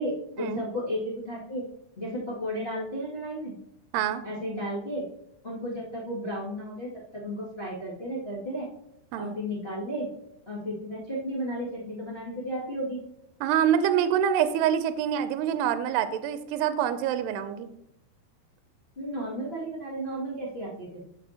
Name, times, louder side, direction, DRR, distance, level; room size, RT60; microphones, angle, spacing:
voice 1, 0.0-1.6 2.0-3.5 4.2-5.0 5.4-8.7 9.1-10.1 10.5-13.0 18.9-21.0, equal, 30° left, -7 dB, 1.1 m, -33 dB
voice 2, 13.4-17.7, right 9 dB, 85° right, 10 dB, 2.6 m, -26 dB
14.0 x 6.6 x 2.8 m, 0.78 s
omnidirectional pair, 4.9 m